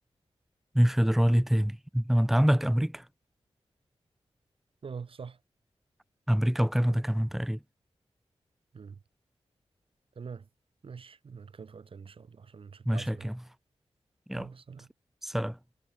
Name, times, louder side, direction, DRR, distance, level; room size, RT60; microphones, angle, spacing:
voice 1, 0.7-3.0 6.3-7.6 12.9-13.4 14.3-14.5 15.2-15.6, equal, 5° right, 0.9 m, -25 dB
voice 2, 4.8-5.4 8.7-8.9 10.2-10.5 10.8-13.3 14.3-14.9, right 5 dB, 55° right, 0.9 m, -44 dB
wide cardioid pair, 135°, 11 cm